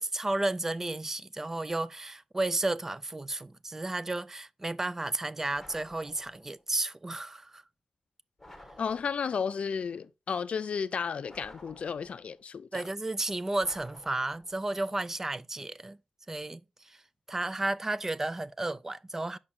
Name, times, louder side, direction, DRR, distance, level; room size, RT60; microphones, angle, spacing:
voice 1, 0.0-7.6 12.7-16.0 16.3-17.0 17.3-19.4, right 2 dB, 20° right, 0.3 m, -33 dB
sound 1, 5.5-6.6 8.4-9.5 11.2-12.4 13.6-14.7, left 1 dB, 5° left, 1.6 m, -53 dB
voice 2, 8.8-12.8, left 6 dB, 60° left, 0.4 m, -33 dB
6.1 x 4.9 x 4.2 m
wide cardioid pair, 155°, 2 cm